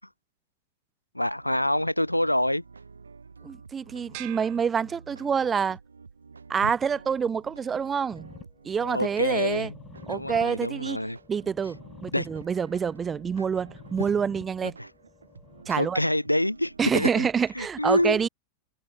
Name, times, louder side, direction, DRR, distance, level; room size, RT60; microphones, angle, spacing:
voice 1, 1.1-2.6 6.6-6.7 8.8-9.7 10.0-11.2 12.1-12.3 14.8-14.9 15.7-17.3 17.5-18.2, left 1 dB, 90° left, 1.2 m, -26 dB
sound 1, 1.2-16.9, right 5 dB, 75° right, 2.1 m, -50 dB
voice 2, 3.4-5.8 6.5-8.3 8.6-9.7 10.1-11.0 11.3-14.7 15.7-16.0 16.8-18.3, right 6 dB, 20° right, 1.2 m, -27 dB
sound 2, 4.1-5.6, right 37 dB, 45° right, 4.7 m, -45 dB
sound 3, 8.1-16.1, left 7 dB, 20° left, 2.3 m, -50 dB
figure-of-eight pair, 90°, 0 cm